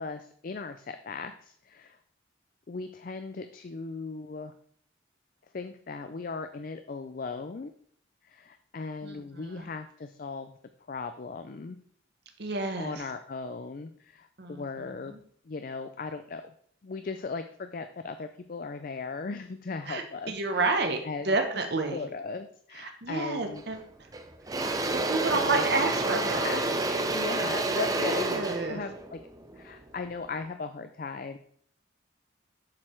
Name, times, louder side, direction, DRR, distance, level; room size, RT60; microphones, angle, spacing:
voice 1, 0.0-2.0 2.7-4.5 5.5-7.7 8.2-10.5 10.9-11.8 12.8-15.1 15.5-16.5 16.8-21.4 21.9-23.6 25.3-25.6 26.0-29.2 29.5-31.4, left 4 dB, 45° left, 8 dB, 0.4 m, -38 dB
voice 2, 9.0-9.6 12.4-12.9 14.4-14.6 15.1-15.2 19.9-22.0 22.8-23.8 24.6-26.6 28.0-28.8, right 3 dB, 55° right, 4 dB, 1.0 m, -30 dB
Engine / Drill, 23.6-23.8 24.1-30.3, right 2 dB, 20° right, 0.6 m, -29 dB
7.6 x 6.5 x 4.4 m, 0.64 s
head